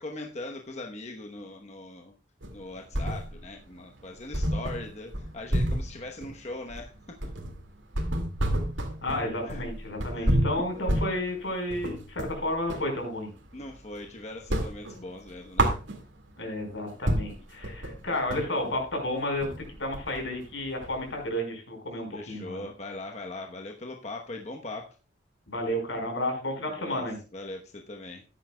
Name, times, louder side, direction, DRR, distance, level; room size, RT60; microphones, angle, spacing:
voice 1, 0.0-2.1 2.5-7.3 9.4-9.6 10.1-10.3 10.7-10.9 13.5-15.8 22.1-24.9 26.8-27.0 27.3-28.2, left 2 dB, 35° left, 2 dB, 1.0 m, -40 dB
sound 1, 2.4-3.6 3.9-4.0 4.3-12.9 13.3-14.1 14.3-16.4 16.8-16.9 17.1-21.2, right 1 dB, 85° right, 2.1 m, -30 dB
voice 2, 9.0-13.3 16.4-22.7 25.5-27.2, left 1 dB, 80° left, 3 dB, 4.5 m, -32 dB
14.0 x 9.9 x 2.2 m, 0.33 s
head